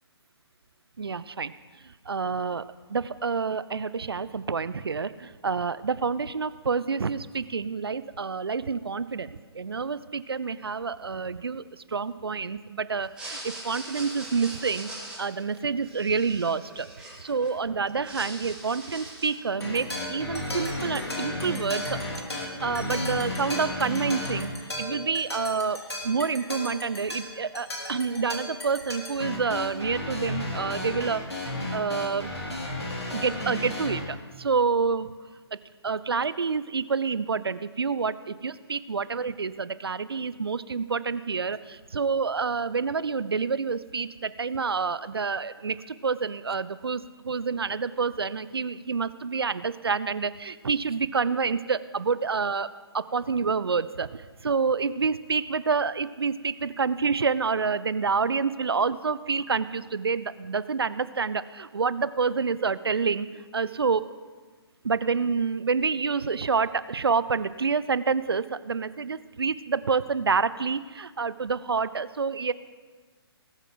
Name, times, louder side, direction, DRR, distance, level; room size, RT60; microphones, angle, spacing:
voice 1, 1.0-1.5 2.1-2.6 2.9-14.9 15.2-16.9 17.2-22.0 22.3-31.3 31.7-32.3 33.1-35.1 35.5-35.6 35.8-52.7 52.9-64.0 64.8-72.5, right 5 dB, 65° right, 16 dB, 0.5 m, -28 dB
sound 1, 13.0-17.5 17.8-19.5, right 2 dB, 5° right, 4.5 m, -41 dB
sound 2, 19.6-34.0, left 1 dB, 75° left, 3.0 m, -34 dB
19.5 x 8.9 x 4.0 m, 1.4 s
figure-of-eight pair, 135°, 14 cm